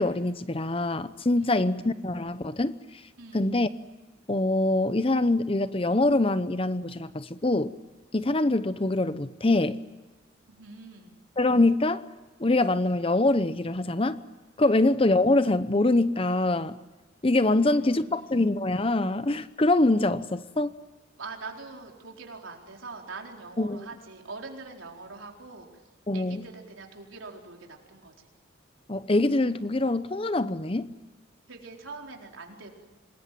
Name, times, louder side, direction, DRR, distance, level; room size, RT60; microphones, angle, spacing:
voice 1, 0.0-2.8 3.3-3.7 4.3-7.7 8.1-9.8 11.4-12.0 12.4-14.2 14.6-16.8 17.2-20.7 23.6-23.9 26.1-26.5 28.9-30.9, left 2 dB, 30° left, 13 dB, 0.8 m, -24 dB
voice 2, 3.2-3.5 10.5-11.1 14.7-14.8 17.5-18.3 21.2-25.7 26.1-28.3 31.5-32.7, right 3 dB, 90° right, 1 dB, 4.3 m, -43 dB
26.5 x 21.0 x 9.2 m, 1.2 s
head